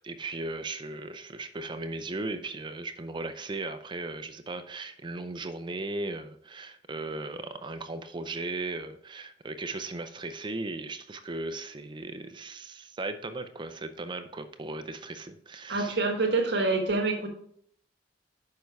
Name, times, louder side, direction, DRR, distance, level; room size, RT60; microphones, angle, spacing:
voice 1, 0.0-16.0, right 2 dB, 25° right, 0.4 m, -37 dB
voice 2, 15.7-17.3, right 3 dB, 60° right, 1.3 m, -26 dB
6.6 x 5.3 x 4.6 m
head